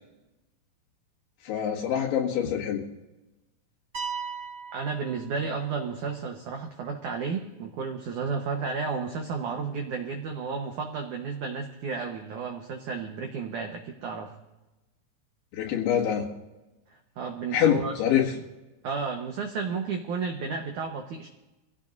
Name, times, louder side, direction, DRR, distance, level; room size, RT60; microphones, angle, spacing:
voice 1, 1.5-2.8 15.5-16.3 17.5-18.3, left 9 dB, 80° left, -4 dB, 4.2 m, -25 dB
sound 1, 3.9-5.8, right 6 dB, 30° right, 1.6 m, -37 dB
voice 2, 4.7-14.3 16.9-17.9 18.8-21.3, right 5 dB, 80° right, 3 dB, 1.8 m, -32 dB
25.0 x 16.5 x 2.6 m, 1.0 s
omnidirectional pair, 5.2 m